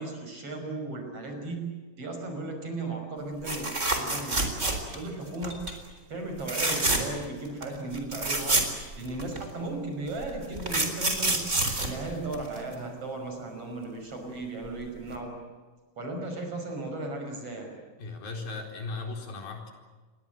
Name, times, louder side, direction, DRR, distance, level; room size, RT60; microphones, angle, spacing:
voice 1, 0.0-5.7 6.1-11.5 11.8-15.5 16.0-17.8, right 2 dB, 40° right, 4 dB, 6.5 m, -36 dB
sound 1, 3.4-5.1 5.4-5.8 6.4-7.2 7.6-7.7 7.9-9.4 10.2-12.7 14.6-14.8 15.1-15.2, right 2 dB, 20° right, 4.1 m, -28 dB
voice 2, 18.0-19.7, left 3 dB, 80° left, 3 dB, 6.2 m, -37 dB
29.0 x 22.0 x 7.8 m, 1.4 s
omnidirectional pair, 4.1 m